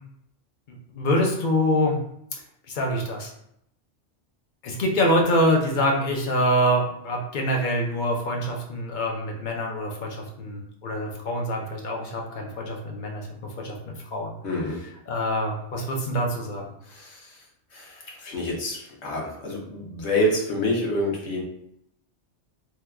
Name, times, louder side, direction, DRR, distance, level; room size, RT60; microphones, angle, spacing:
voice 1, 0.7-2.0 2.7-3.3 4.6-14.3 15.1-16.7, equal, 50° left, 0 dB, 0.7 m, -25 dB
voice 2, 14.4-14.8 16.8-17.4 17.7-21.4, left 1 dB, 70° left, -2 dB, 1.1 m, -27 dB
2.9 x 2.2 x 3.4 m, 0.75 s
omnidirectional pair, 1.2 m